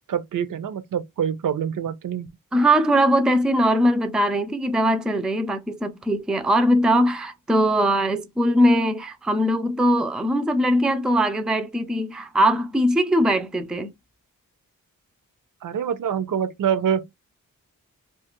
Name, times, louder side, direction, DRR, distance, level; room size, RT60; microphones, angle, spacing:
voice 1, 0.1-2.3 15.6-17.0, right 8 dB, 70° right, 0.5 m, -25 dB
voice 2, 2.5-13.9, equal, ahead, 0.3 m, -21 dB
2.4 x 2.4 x 2.9 m
wide cardioid pair, 80°, 34 cm